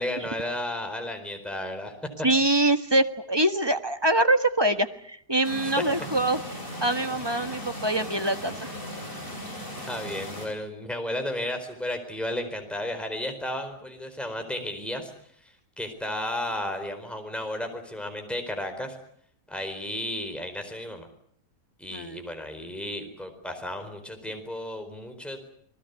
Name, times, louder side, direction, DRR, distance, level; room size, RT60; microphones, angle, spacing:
voice 1, 0.0-1.9 9.9-15.1 15.8-19.0 19.5-21.1 21.8-25.5, left 1 dB, ahead, 5 dB, 4.4 m, -33 dB
voice 2, 2.2-6.4 6.8-8.7 21.9-22.2, right 1 dB, 15° right, 8 dB, 1.3 m, -24 dB
sound 1, 5.4-10.5, equal, 30° left, 8.4 m, -37 dB
28.5 x 20.5 x 8.3 m, 0.66 s
omnidirectional pair, 1.8 m